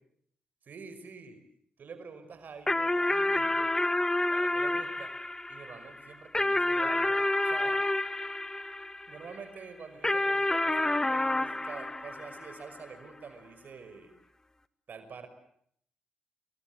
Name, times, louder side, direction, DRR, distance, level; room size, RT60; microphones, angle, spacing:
voice 1, 0.6-1.4 1.8-3.7 4.3-5.1 5.5-7.8 9.1-14.2 14.9-15.3, right 5 dB, 65° right, 10 dB, 5.5 m, -47 dB
sound 1, 2.7-9.4 10.0-12.8, left 2 dB, 20° left, 1.7 m, -29 dB
29.0 x 23.5 x 8.0 m, 0.68 s
supercardioid pair, 55°, 3 cm